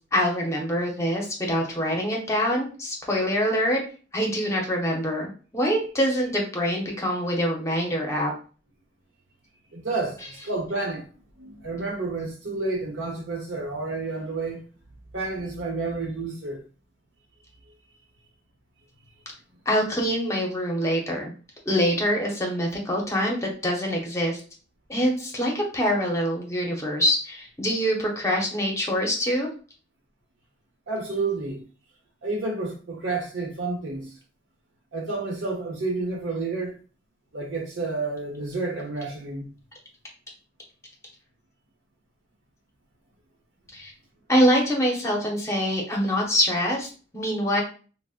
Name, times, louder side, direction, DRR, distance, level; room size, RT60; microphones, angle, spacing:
voice 1, 0.0-3.8 4.1-8.3 19.7-21.3 21.7-24.4 24.9-29.5 43.7-43.9 44.3-47.6, equal, 15° left, 0.7 m, -25 dB
voice 2, 9.7-11.1 11.4-14.6 15.1-16.6 30.9-31.6 32.2-34.1 34.9-36.8 37.3-39.5, right 3 dB, 80° right, 0.9 m, -30 dB
4.0 x 2.1 x 2.4 m
head